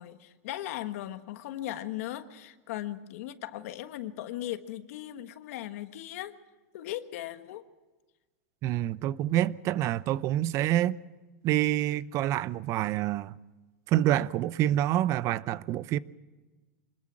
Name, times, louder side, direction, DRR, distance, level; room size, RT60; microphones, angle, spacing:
voice 1, 0.0-6.3 6.7-7.6, left 13 dB, 70° left, 1.4 m, -38 dB
voice 2, 8.6-11.0 11.4-13.3 13.9-16.0, right 13 dB, 40° right, 0.7 m, -27 dB
25.0 x 20.5 x 6.1 m
supercardioid pair, 140°, 8 cm